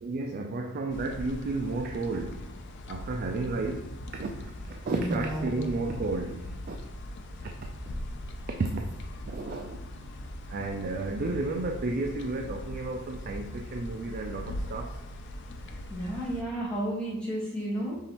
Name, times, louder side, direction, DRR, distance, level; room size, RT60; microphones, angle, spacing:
voice 1, 0.0-2.6 2.9-6.8 7.4-7.5 8.5-8.8 9.2-10.1 10.5-15.0, right 3 dB, 40° right, 3 dB, 0.3 m, -32 dB
sound 1, 0.9-16.4, left 1 dB, 55° left, 0.4 m, -40 dB
voice 2, 5.0-5.9 15.7-18.0, right 1 dB, 5° left, -7 dB, 1.3 m, -33 dB
5.5 x 3.0 x 2.9 m, 0.97 s
head